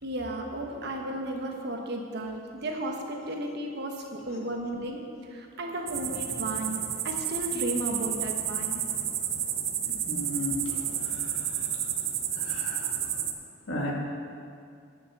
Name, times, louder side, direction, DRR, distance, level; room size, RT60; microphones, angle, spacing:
voice 1, 0.0-8.8, right 1 dB, 60° right, 2 dB, 1.3 m, -34 dB
sound 1, 5.9-13.3, right 9 dB, 75° right, 0.8 m, -31 dB
voice 2, 9.8-11.9 12.3-13.1 13.7-13.9, left 1 dB, 90° left, -2 dB, 2.1 m, -37 dB
9.6 x 6.9 x 6.7 m, 2.4 s
head